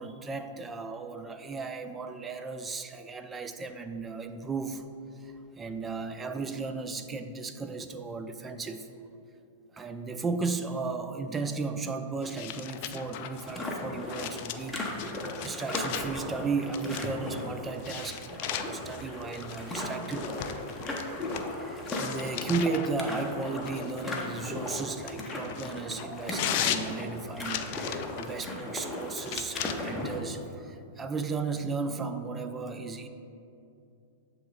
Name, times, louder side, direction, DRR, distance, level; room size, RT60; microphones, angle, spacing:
voice 1, 0.0-4.9 5.2-8.9 9.7-14.8 15.1-20.3 21.5-33.1, right 4 dB, 20° right, 8 dB, 0.4 m, -35 dB
sound 1, 12.2-16.3 16.7-17.3 17.8-21.5 21.9-22.9 23.6-28.3 29.1-29.7, left 11 dB, 55° left, 0.3 m, -37 dB
sound 2, 13.4-30.2, left 1 dB, 10° left, 0.9 m, -37 dB
7.7 x 3.1 x 3.9 m, 2.6 s
hypercardioid pair, 110°, 0 cm